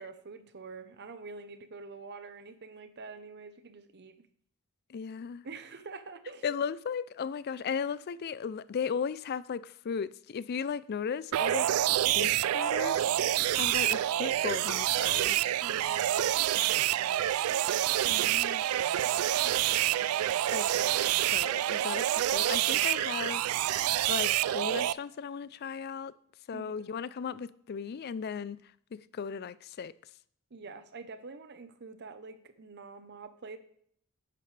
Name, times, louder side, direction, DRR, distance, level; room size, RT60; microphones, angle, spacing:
voice 1, 0.0-4.2 5.4-6.4 15.6-17.5 19.1-20.1 26.5-26.7 30.5-33.6, right 4 dB, 50° right, 0.8 m, -46 dB
voice 2, 4.9-5.4 6.4-11.7 12.1-15.4 18.0-18.7 20.5-20.9 21.2-26.1 26.5-28.6 28.9-29.9, left 6 dB, 45° left, 0.3 m, -36 dB
sound 1, 11.3-24.9, right 12 dB, 85° right, 0.3 m, -27 dB
10.5 x 8.6 x 3.3 m
head